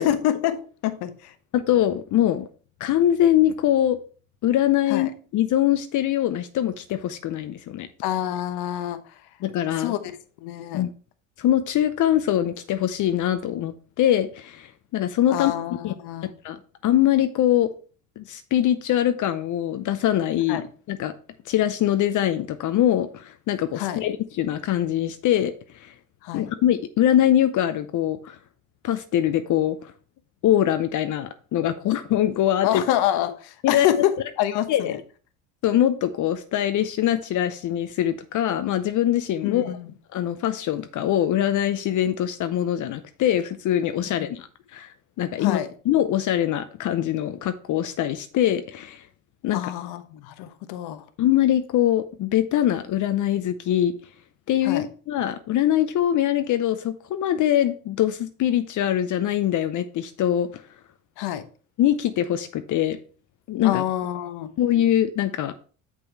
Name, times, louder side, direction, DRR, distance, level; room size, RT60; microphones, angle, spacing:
voice 1, 0.0-1.3 4.9-5.1 8.0-9.1 9.8-10.1 10.4-10.8 15.3-16.3 20.5-20.6 23.8-24.0 26.2-26.5 32.6-35.0 39.4-39.9 44.2-44.3 45.4-45.7 49.5-51.0 54.6-54.9 61.2-61.4 63.6-64.5, left 12 dB, 65° left, 11 dB, 1.0 m, -27 dB
voice 2, 1.5-2.5 2.8-4.0 4.4-7.9 9.4-9.9 10.7-10.9 11.4-15.5 15.8-15.9 16.4-17.7 18.2-20.6 20.9-21.1 21.5-25.9 26.3-28.4 28.8-29.9 30.4-32.8 33.6-33.9 34.7-35.0 35.6-39.7 40.1-45.6 45.9-49.1 49.4-49.6 51.2-53.9 54.5-60.6 61.8-63.0 63.5-63.8 64.6-65.5, left 11 dB, 50° left, 10 dB, 0.7 m, -23 dB
6.9 x 5.5 x 4.5 m, 0.40 s
supercardioid pair, 80°, 40 cm